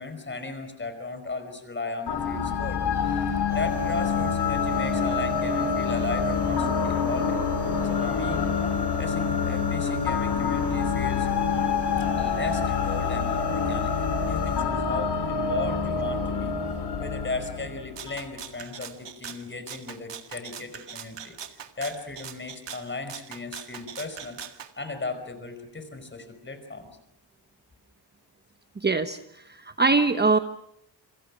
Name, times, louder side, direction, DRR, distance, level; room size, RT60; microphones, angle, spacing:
voice 1, 0.0-7.4 7.8-8.5 9.0-11.3 12.2-14.0 14.3-16.6 17.0-21.4 21.8-24.4 24.8-26.9, left 3 dB, 25° left, 8 dB, 4.9 m, -36 dB
sound 1, 2.1-18.3, left 6 dB, 65° left, 3.1 m, -27 dB
sound 2, 3.5-14.7, left 1 dB, 60° right, 6.9 m, -36 dB
Rattle (instrument), 18.0-24.7, right 8 dB, 85° right, 2.0 m, -41 dB
voice 2, 28.8-30.4, right 3 dB, 25° right, 8 dB, 1.0 m, -23 dB
27.5 x 26.0 x 6.2 m, 0.75 s
wide cardioid pair, 150°, 42 cm